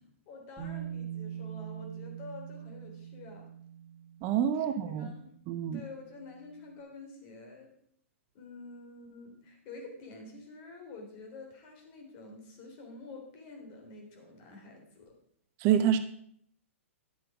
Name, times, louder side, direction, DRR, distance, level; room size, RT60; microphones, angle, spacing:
voice 1, 0.3-3.4 4.5-4.7 5.0-5.3 5.7-7.7 8.3-15.1, left 3 dB, 40° left, 2 dB, 3.6 m, -48 dB
Bass guitar, 0.6-6.6, right 10 dB, 5° right, 3.0 m, -44 dB
voice 2, 4.2-5.1 5.5-5.8 15.6-16.0, right 9 dB, 35° right, 9 dB, 0.8 m, -27 dB
10.5 x 7.7 x 5.0 m, 0.66 s
hypercardioid pair, 120°, 7 cm